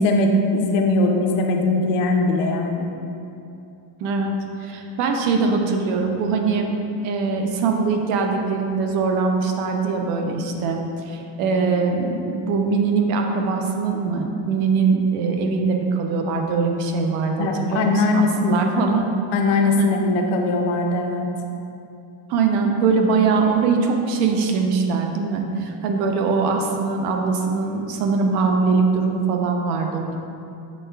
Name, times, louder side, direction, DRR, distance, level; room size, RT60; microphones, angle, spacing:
voice 1, 0.0-2.9 17.4-18.6 19.3-21.3, left 2 dB, 60° left, 3 dB, 0.5 m, -20 dB
voice 2, 4.0-4.3 4.6-6.7 7.0-10.8 11.1-19.1 19.8-19.9 22.3-30.2, right 4 dB, 75° right, 3 dB, 0.6 m, -22 dB
6.3 x 3.3 x 2.2 m, 2.7 s
cardioid pair, 175°, 49 cm